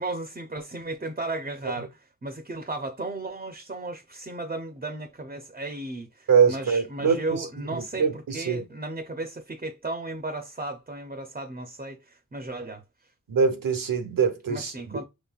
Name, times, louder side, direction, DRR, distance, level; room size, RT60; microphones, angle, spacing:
voice 1, 0.0-8.1 8.3-12.8 14.5-15.0, right 2 dB, 25° right, 0.7 m, -35 dB
voice 2, 6.3-8.6 13.3-15.0, right 6 dB, 80° right, 1.0 m, -24 dB
5.6 x 3.2 x 2.4 m
wide cardioid pair, 70°, 33 cm